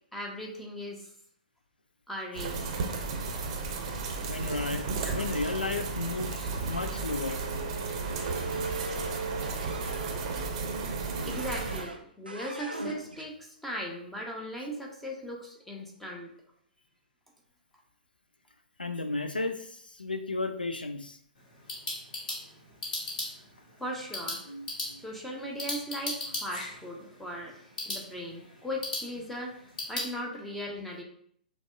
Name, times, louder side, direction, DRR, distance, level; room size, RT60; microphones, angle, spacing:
voice 1, 0.1-1.1 2.1-2.6 11.2-16.3 23.8-24.4 25.0-29.5 29.9-31.0, equal, 5° left, -1 dB, 0.5 m, -38 dB
sound 1, 2.3-11.8, right 4 dB, 40° right, 0.6 m, -33 dB
voice 2, 4.3-7.4 18.8-21.2, left 3 dB, 80° left, 8 dB, 0.4 m, -33 dB
sound 2, 8.0-10.2 11.0-12.0 12.3-13.3, right 2 dB, 90° right, 0.5 m, -42 dB
sound 3, 21.3-30.1, left 2 dB, 55° left, 1.4 m, -38 dB
5.9 x 2.0 x 2.5 m, 0.65 s
figure-of-eight pair, 115°, 5 cm